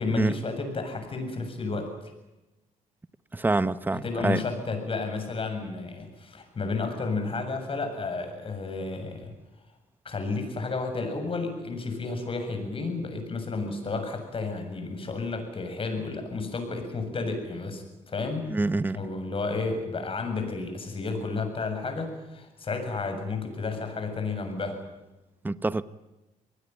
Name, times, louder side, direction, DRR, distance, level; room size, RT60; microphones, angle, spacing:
voice 1, 0.0-2.1 4.0-9.3 10.0-18.5 18.9-24.8, left 3 dB, 40° left, 7.5 m, -32 dB
voice 2, 3.3-4.4 18.5-19.0 25.4-25.8, right 2 dB, 15° right, 0.9 m, -26 dB
25.0 x 19.5 x 9.2 m
cardioid pair, 95°, 14 cm